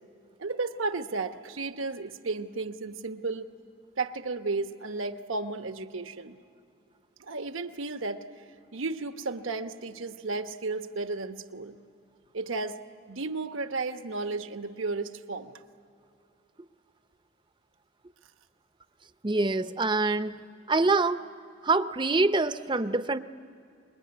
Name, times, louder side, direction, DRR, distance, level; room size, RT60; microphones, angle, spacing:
voice 1, 0.4-3.5 4.0-6.4 7.2-8.4 8.7-11.8 12.3-12.8 13.1-15.5, right 3 dB, 85° right, 8 dB, 1.0 m, -33 dB
voice 2, 19.2-21.2 21.6-23.2, right 3 dB, 25° right, 12 dB, 0.6 m, -25 dB
25.5 x 21.5 x 9.6 m, 2.5 s
head